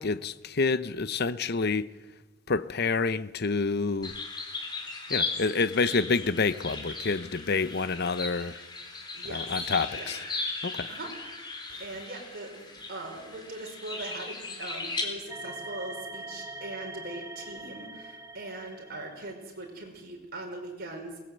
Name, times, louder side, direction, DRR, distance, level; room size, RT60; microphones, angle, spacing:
voice 1, 0.0-1.9 2.5-4.1 5.1-8.6 9.3-10.2 10.6-10.9, left 4 dB, 55° left, 0.8 m, -28 dB
sound 1, 4.0-15.0, left 3 dB, 25° left, 3.6 m, -37 dB
voice 2, 9.1-9.5 9.9-10.1 10.9-11.1 11.8-21.2, right 2 dB, 50° right, 5.2 m, -40 dB
sound 2, 15.3-19.6, right 2 dB, 15° right, 1.4 m, -43 dB
22.0 x 19.5 x 7.9 m
head